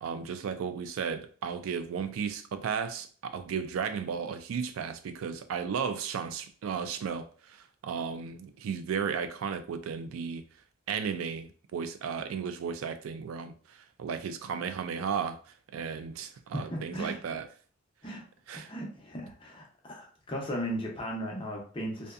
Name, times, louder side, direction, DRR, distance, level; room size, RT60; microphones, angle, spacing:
voice 1, 0.0-10.4 10.9-15.4 15.7-17.5 18.5-18.7, right 6 dB, 80° right, 0.3 m, -34 dB
voice 2, 16.5-17.2 18.0-18.2 18.5-22.1, equal, 25° left, 0.6 m, -36 dB
2.6 x 2.2 x 2.3 m
head